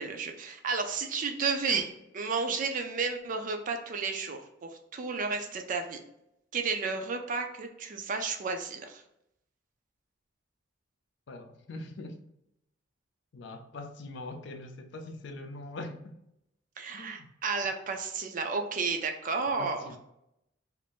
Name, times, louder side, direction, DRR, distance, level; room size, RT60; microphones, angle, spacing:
voice 1, 0.0-1.9 2.1-6.0 6.5-9.0 16.8-19.9, right 4 dB, 45° right, 0.4 m, -32 dB
voice 2, 11.3-12.2 13.3-16.2 16.9-17.3 19.6-20.0, left 2 dB, 65° left, 0.4 m, -42 dB
2.5 x 2.5 x 3.4 m
head